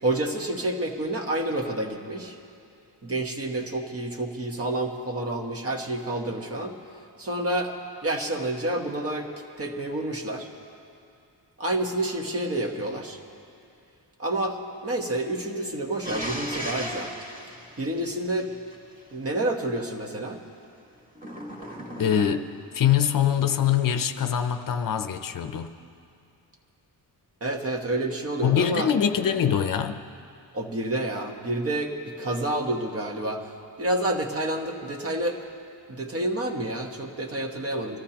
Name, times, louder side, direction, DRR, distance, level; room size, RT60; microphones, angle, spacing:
voice 1, 0.0-2.4 3.0-6.8 7.2-7.7 8.0-9.3 9.6-10.5 11.6-13.2 14.2-17.1 17.8-18.5 19.1-20.4 27.4-28.9 30.5-33.5 33.8-35.4 35.9-38.0, right 1 dB, 35° right, 2 dB, 1.3 m, -29 dB
sound 1, 16.0-18.7 21.1-22.6, equal, 20° right, 2.0 m, -36 dB
voice 2, 22.0-22.5 22.7-25.7 28.4-30.0, left 9 dB, 55° left, 8 dB, 0.6 m, -23 dB
24.0 x 14.0 x 2.9 m, 2.5 s
wide cardioid pair, 140°, 39 cm